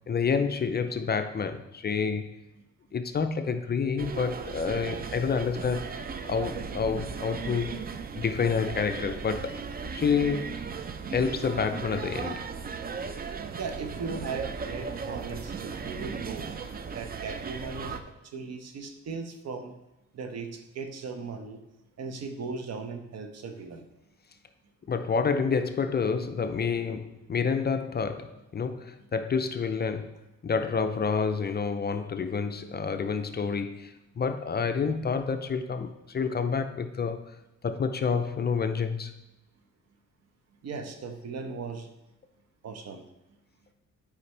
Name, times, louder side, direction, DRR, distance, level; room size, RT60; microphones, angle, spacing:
voice 1, 0.1-2.4 2.9-7.8 8.1-9.6 9.9-10.6 11.1-12.5 24.9-37.2 37.6-39.1, left 5 dB, 35° left, 8 dB, 0.6 m, -29 dB
sound 1, 4.0-18.0, right 5 dB, 30° right, 0.6 m, -37 dB
voice 2, 13.6-16.5 16.9-19.7 20.1-21.6 22.0-23.8 40.6-41.9 42.6-43.0, right 4 dB, 60° right, 6 dB, 1.0 m, -38 dB
8.2 x 5.1 x 3.3 m, 0.94 s
cardioid pair, 90°, 30 cm